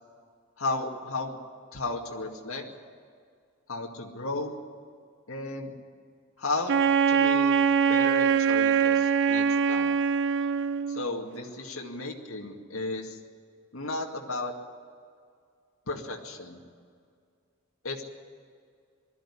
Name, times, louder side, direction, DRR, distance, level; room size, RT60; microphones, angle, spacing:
voice 1, 0.6-1.4 1.7-2.6 3.7-4.5 5.3-5.8 6.4-6.7 7.1-7.5 7.9-9.9 10.9-13.2 13.7-14.5 15.9-16.6 17.8-18.0, left 2 dB, 75° left, 1 dB, 2.3 m, -34 dB
Wind instrument woodwind instrument, 6.7-11.1, right 7 dB, 60° right, 0.6 m, -23 dB
20.5 x 13.5 x 10.0 m, 2.2 s
head